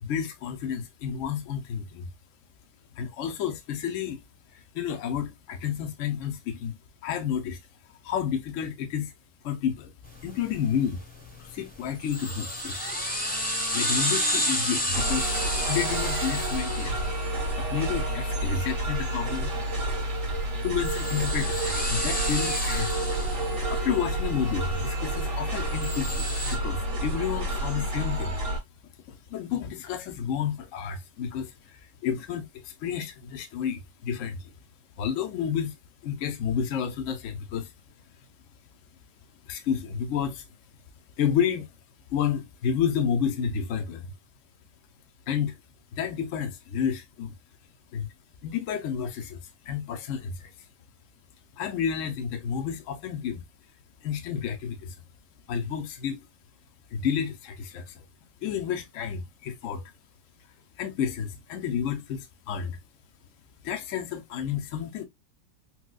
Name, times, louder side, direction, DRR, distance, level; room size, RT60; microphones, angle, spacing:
voice 1, 0.0-2.1 3.0-4.2 4.5-6.8 7.0-7.6 8.0-9.1 9.4-9.9 10.2-11.0 11.4-13.0 13.7-17.1 17.6-19.5 20.6-23.1 23.7-28.4 29.1-34.5 35.0-35.8 36.0-37.7 39.4-40.4 41.2-41.7 42.1-44.1 45.3-45.6 45.9-47.3 47.9-48.1 48.4-50.5 51.6-53.4 54.0-55.0 55.5-56.2 56.9-58.0 58.4-59.8 60.8-62.8 63.6-65.0, left 8 dB, 60° left, 0.9 m, -30 dB
sound 1, 10.1-26.6, equal, 5° left, 0.8 m, -32 dB
sound 2, 14.9-28.6, right 1 dB, 50° right, 1.9 m, -29 dB
4.4 x 2.3 x 2.3 m
omnidirectional pair, 1.9 m